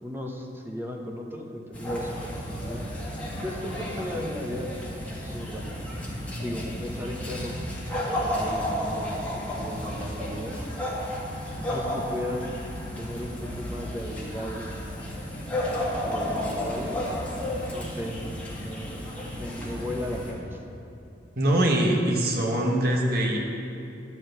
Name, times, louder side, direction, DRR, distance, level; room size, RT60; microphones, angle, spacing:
voice 1, 0.0-2.8 3.3-5.6 6.4-7.7 8.1-10.6 11.6-12.5 13.0-14.8 16.1-17.1 17.6-18.2 18.6-20.6, left 1 dB, 15° right, 1 dB, 0.8 m, -36 dB
sound 1, 1.7-20.3, equal, 10° left, 1.6 m, -32 dB
voice 2, 21.3-23.4, right 1 dB, 60° right, 0 dB, 1.2 m, -23 dB
10.5 x 4.4 x 7.9 m, 2.7 s
head